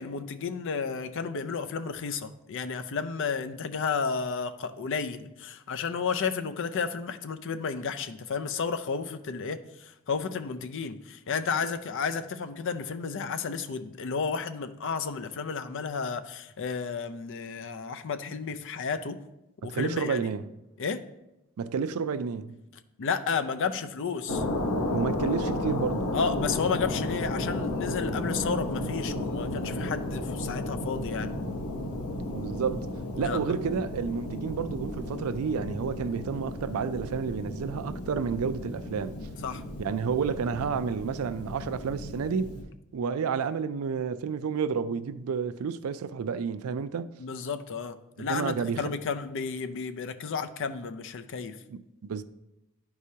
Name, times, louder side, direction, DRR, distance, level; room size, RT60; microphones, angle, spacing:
voice 1, 0.0-19.2 19.6-20.3 20.8-21.0 23.0-24.4 26.1-31.3 33.2-33.6 39.4-39.6 47.2-51.6, left 5 dB, 60° left, 0.5 m, -32 dB
voice 2, 19.6-20.4 21.6-22.6 24.9-26.1 32.3-39.1 39.8-42.5 42.9-47.2 48.2-48.9 51.7-52.2, right 6 dB, 80° right, 0.4 m, -30 dB
sound 1, 24.3-42.6, left 1 dB, 85° left, 1.1 m, -33 dB
11.0 x 4.8 x 2.8 m
head